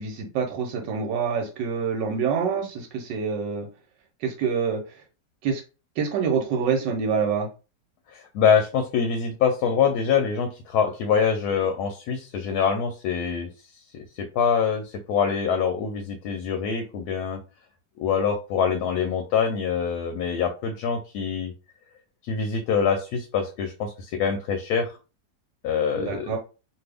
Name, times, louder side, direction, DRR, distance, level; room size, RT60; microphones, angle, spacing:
voice 1, 0.0-3.7 4.2-5.0 5.4-5.6 6.0-7.5 25.9-26.4, right 6 dB, 85° right, 1 dB, 1.3 m, -26 dB
voice 2, 8.1-13.5 14.2-17.4 18.0-21.5 22.2-24.9 25.6-26.3, left 6 dB, 75° left, 5 dB, 1.0 m, -24 dB
2.6 x 2.5 x 3.3 m, 0.32 s
omnidirectional pair, 1.9 m